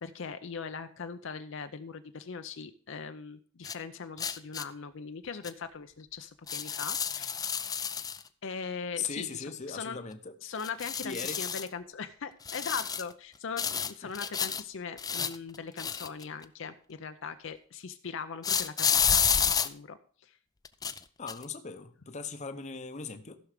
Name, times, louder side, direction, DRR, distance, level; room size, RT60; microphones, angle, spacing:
voice 1, 0.0-7.4 8.4-10.0 10.4-20.0 20.2-20.4, left 5 dB, 65° left, 9 dB, 0.6 m, -40 dB
sound 1, 3.6-3.7 4.2-4.6 5.4-5.5 6.5-8.2 10.6-11.7 12.4-13.1 13.6-14.6 15.0-16.4 18.4-19.7 20.6-21.0 21.3-21.4, left 7 dB, 20° left, 0.4 m, -30 dB
voice 2, 9.0-10.3 11.0-11.4 14.0-14.1 21.2-23.4, left 5 dB, 35° left, 8 dB, 0.8 m, -38 dB
15.0 x 6.2 x 4.9 m, 0.43 s
head